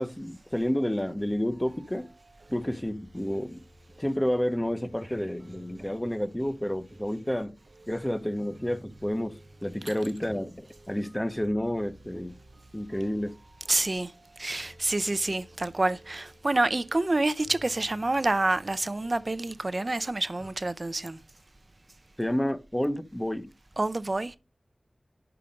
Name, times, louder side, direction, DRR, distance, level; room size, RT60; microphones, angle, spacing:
voice 1, 0.0-2.1 2.5-3.6 4.0-7.5 7.9-12.4 12.7-13.4 22.2-23.5, equal, 15° left, 0.7 m, -30 dB
sound 1, 1.5-20.5, right 1 dB, 80° right, 0.8 m, -55 dB
voice 2, 13.7-14.1 14.4-21.2 23.8-24.4, right 2 dB, 50° right, 0.5 m, -27 dB
5.8 x 4.9 x 5.1 m
wide cardioid pair, 65°, 0 cm